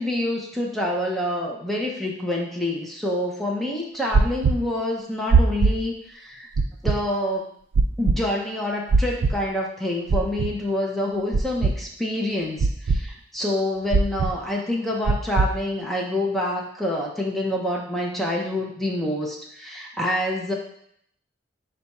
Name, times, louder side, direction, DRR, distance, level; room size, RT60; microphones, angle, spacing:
voice 1, 0.0-6.5 6.8-7.5 8.0-20.5, left 1 dB, ahead, -2 dB, 0.5 m, -27 dB
sound 1, 4.1-4.5 5.3-5.7 6.6-7.0 7.7-8.1 8.9-9.3 10.1-10.5 11.3-11.7 12.6-13.0 13.9-14.3 15.1-15.5, right 4 dB, 75° right, 0.4 m, -18 dB
4.8 x 2.3 x 4.1 m, 0.69 s
head